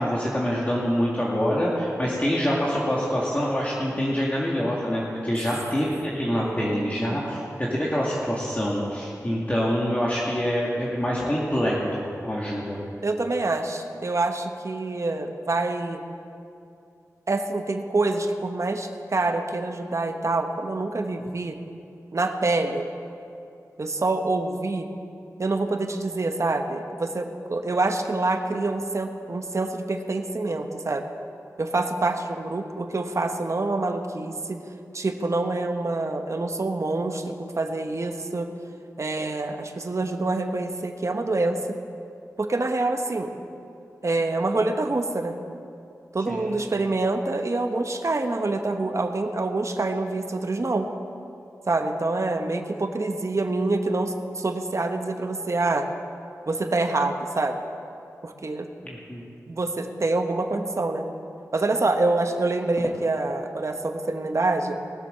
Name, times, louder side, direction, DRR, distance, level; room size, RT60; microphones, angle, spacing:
voice 1, 0.0-12.8 46.3-46.5 58.8-59.2, equal, 25° left, -5 dB, 2.1 m, -26 dB
voice 2, 6.4-7.2 13.0-16.0 17.3-21.6 22.1-22.9 23.8-24.9 25.4-31.0 31.6-34.6 34.9-38.5 39.0-41.8 42.4-43.3 44.0-45.4 46.1-50.9 51.7-55.9 56.5-57.6 58.2-58.7 59.5-61.1 61.5-64.8, right 2 dB, 55° right, 5 dB, 1.1 m, -26 dB
19.5 x 7.4 x 6.8 m, 2.7 s
wide cardioid pair, 55°, 6 cm